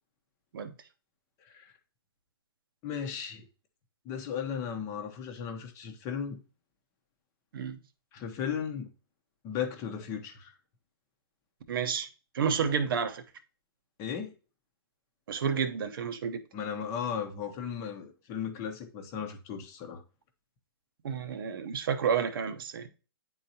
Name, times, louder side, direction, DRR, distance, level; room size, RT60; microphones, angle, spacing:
voice 1, 2.8-3.4 4.0-6.4 8.1-8.9 9.4-10.5 14.0-14.3 16.5-20.0, left 7 dB, 25° left, 0.8 m, -36 dB
voice 2, 11.7-12.1 12.3-13.2 15.3-16.4 21.0-22.9, right 6 dB, 60° right, 0.9 m, -30 dB
9.2 x 3.9 x 2.8 m
hypercardioid pair, 150°, 13 cm